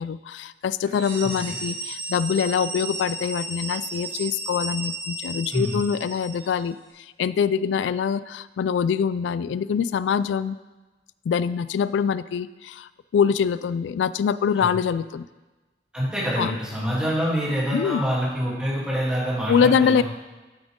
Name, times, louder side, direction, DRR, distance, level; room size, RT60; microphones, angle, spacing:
voice 1, 0.0-10.6 11.3-15.3 16.4-16.6 17.7-18.0 19.5-20.0, left 7 dB, 90° left, 16 dB, 0.3 m, -24 dB
sound 1, 0.8-6.5, right 2 dB, 70° right, 2.7 m, -34 dB
voice 2, 1.2-1.5 5.5-5.8 14.6-14.7 15.9-20.0, equal, 5° right, -8 dB, 2.8 m, -26 dB
9.0 x 8.7 x 3.6 m, 1.2 s
head